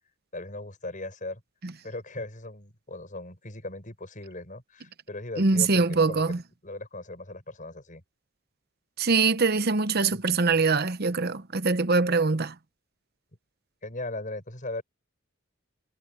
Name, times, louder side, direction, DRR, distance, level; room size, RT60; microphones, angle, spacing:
voice 1, 0.3-1.4 1.8-8.0 10.1-10.2 13.8-14.8, left 2 dB, 40° left, 6.0 m, -38 dB
voice 2, 5.4-6.4 9.0-12.5, right 4 dB, 50° right, 0.9 m, -23 dB
head